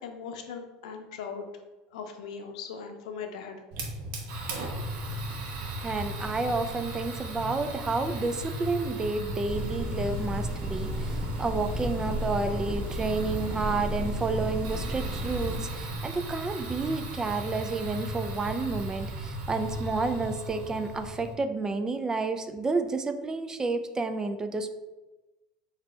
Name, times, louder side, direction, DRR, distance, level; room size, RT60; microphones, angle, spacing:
voice 1, 0.0-1.5 1.9-3.6, left 6 dB, 85° left, 5 dB, 0.6 m, -39 dB
Fire, 3.7-21.3, right 1 dB, 70° right, 0.9 m, -36 dB
voice 2, 5.8-24.7, right 3 dB, 20° right, 8 dB, 0.4 m, -30 dB
sound 1, 9.4-15.6, equal, 35° right, 0.9 m, -34 dB
4.0 x 2.8 x 4.3 m, 1.1 s
supercardioid pair, 100°, 3 cm